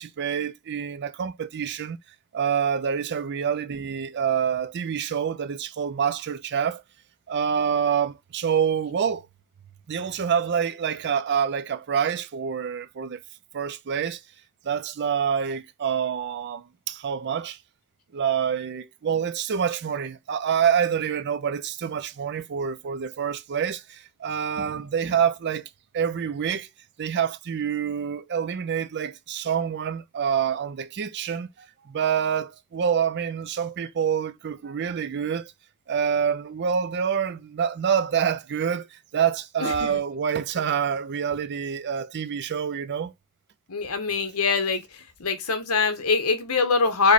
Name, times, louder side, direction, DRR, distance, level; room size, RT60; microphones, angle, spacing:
voice 1, 0.0-2.0 2.3-6.8 7.3-9.3 9.9-13.2 13.5-14.2 14.6-17.6 18.1-26.7 27.0-35.5 35.9-43.1, right 7 dB, 50° right, 0.4 m, -27 dB
voice 2, 39.6-40.0 43.7-44.8 45.2-47.1, left 4 dB, 80° left, 1.0 m, -23 dB
4.8 x 2.2 x 4.1 m
head